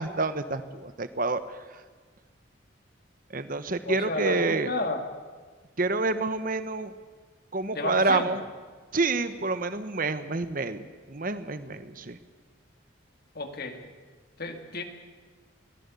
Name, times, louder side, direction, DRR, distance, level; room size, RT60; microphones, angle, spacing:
voice 1, 0.0-1.4 3.3-4.7 5.8-6.9 7.5-8.4 8.9-12.2, right 3 dB, 45° right, 11 dB, 1.2 m, -28 dB
voice 2, 3.8-5.0 7.7-8.4 13.3-13.9 14.4-14.8, left 2 dB, 50° left, 5 dB, 2.2 m, -32 dB
23.0 x 17.5 x 8.4 m, 1.5 s
head